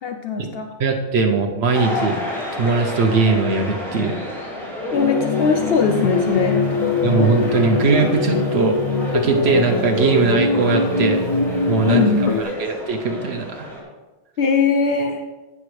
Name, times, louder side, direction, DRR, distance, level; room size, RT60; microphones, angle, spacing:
voice 1, 0.0-0.7 4.9-6.6 11.9-12.3 14.4-15.2, left 5 dB, 70° left, 5 dB, 0.8 m, -20 dB
voice 2, 0.8-2.2 2.5-4.2 7.0-8.8 9.1-11.2 11.6-13.7, right 4 dB, 75° right, 4 dB, 1.0 m, -20 dB
sound 1, 1.7-13.8, left 1 dB, ahead, 2.9 m, -31 dB
sound 2, 4.9-12.4, left 3 dB, 50° left, 0.4 m, -22 dB
sound 3, 5.4-12.6, left 1 dB, 30° left, 1.1 m, -35 dB
15.0 x 6.1 x 3.2 m, 1.2 s
omnidirectional pair, 1.1 m